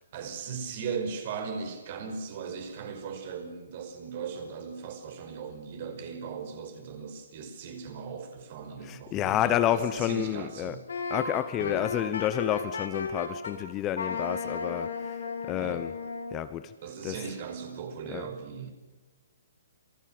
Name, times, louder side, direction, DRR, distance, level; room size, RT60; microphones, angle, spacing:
voice 1, 0.0-10.8 11.6-11.9 15.6-15.8 16.8-18.7, right 6 dB, 40° right, 6 dB, 5.5 m, -38 dB
voice 2, 8.9-10.8 11.1-14.9 15.5-15.9 16.3-16.7 17.0-17.1 18.1-18.2, left 12 dB, 20° left, 12 dB, 0.9 m, -29 dB
Wind instrument woodwind instrument, 10.9-13.6 14.0-16.4, left 4 dB, 85° left, 6.3 m, -34 dB
28.0 x 18.5 x 7.8 m, 1.2 s
hypercardioid pair, 155°, 0 cm